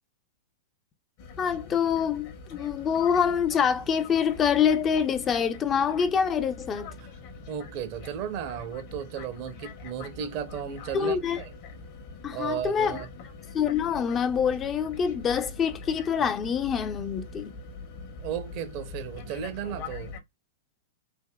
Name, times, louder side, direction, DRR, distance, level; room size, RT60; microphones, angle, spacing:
sound 1, 1.2-20.2, left 4 dB, 50° left, 0.9 m, -43 dB
voice 1, 1.4-6.9 10.9-11.4 12.2-13.0 13.5-17.5, left 7 dB, 25° left, 0.4 m, -26 dB
voice 2, 7.5-11.5 12.3-13.1 18.2-20.2, right 9 dB, 45° right, 0.6 m, -35 dB
3.4 x 2.6 x 2.2 m
hypercardioid pair, 115°, 0 cm